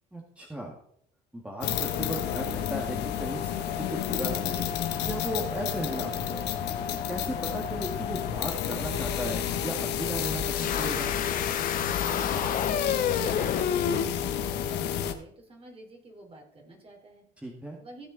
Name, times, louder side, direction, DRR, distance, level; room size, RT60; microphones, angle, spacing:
voice 1, 0.1-0.8 1.3-4.7 5.0-6.4 7.1-11.1 17.4-17.8, right 1 dB, 5° right, 0 dB, 2.0 m, -36 dB
sound 1, 1.6-15.1, left 9 dB, 80° left, 1.4 m, -31 dB
sound 2, 10.5-14.0, left 8 dB, 55° left, 1.2 m, -29 dB
voice 2, 12.0-17.3 17.8-18.1, right 2 dB, 35° right, 1 dB, 4.2 m, -47 dB
16.0 x 7.3 x 4.0 m, 0.64 s
cardioid pair, 110°, 17 cm